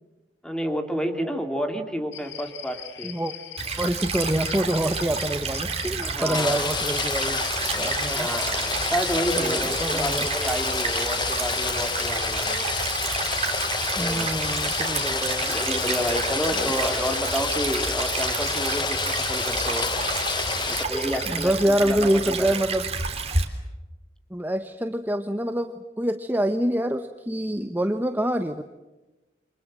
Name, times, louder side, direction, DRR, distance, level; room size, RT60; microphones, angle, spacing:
voice 1, 0.4-3.1 6.0-6.6 8.0-12.7 14.0-14.4 15.5-19.9 20.7-22.5, equal, 5° left, 6 dB, 2.6 m, -30 dB
sound 1, 2.1-21.7, left 10 dB, 85° left, 2.0 m, -41 dB
Stream / Trickle dribble, 3.6-23.4, right 5 dB, 35° right, 3.3 m, -30 dB
voice 2, 3.8-7.4 7.7-8.3 9.4-10.3 14.0-15.5 16.5-16.7 21.3-22.9 24.3-28.6, right 1 dB, 10° right, 7 dB, 1.0 m, -26 dB
Rain, 6.3-20.8, left 5 dB, 25° left, 1.0 m, -29 dB
28.5 x 25.0 x 7.6 m, 1.1 s
head